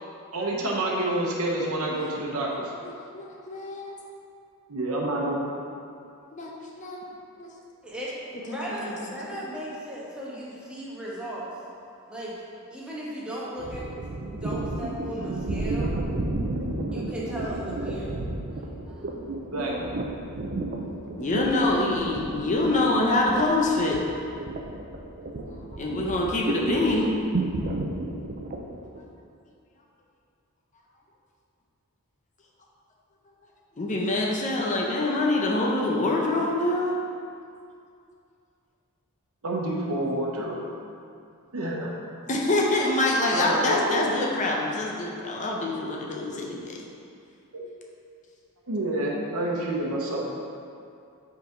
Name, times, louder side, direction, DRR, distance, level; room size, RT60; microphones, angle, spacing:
voice 1, 0.3-2.7 4.7-5.4 19.4-19.9 34.9-35.1 39.4-40.6 41.5-41.9 43.3-44.2 47.5-47.7 48.7-50.3, right 1 dB, 70° right, -2 dB, 1.0 m, -28 dB
voice 2, 2.8-3.9 6.3-7.0 7.3-7.5 8.5-8.7 9.3-9.4 21.2-24.0 25.7-27.1 33.8-36.9 42.3-46.8, left 2 dB, 35° left, -2 dB, 0.7 m, -25 dB
voice 3, 7.8-11.5 12.1-12.4 12.7-13.8 14.2-15.9 16.6-18.2 18.5-18.6 18.9-19.2, equal, 5° right, -7 dB, 1.1 m, -36 dB
sound 1, 13.6-29.0, right 2 dB, 45° right, 0.5 m, -32 dB
5.5 x 3.9 x 5.0 m, 2.4 s
head